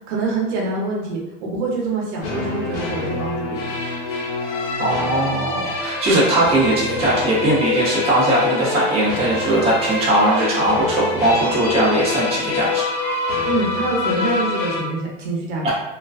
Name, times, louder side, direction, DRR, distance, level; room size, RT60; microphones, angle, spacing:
voice 1, 0.1-3.6 13.5-15.7, right 3 dB, 70° right, -2 dB, 0.8 m, -25 dB
sound 1, 2.2-14.8, left 4 dB, 65° left, 0.9 m, -25 dB
voice 2, 4.8-12.8 15.6-15.7, right 1 dB, 15° right, -8 dB, 0.8 m, -19 dB
2.4 x 2.2 x 2.3 m, 0.97 s
supercardioid pair, 145°, 37 cm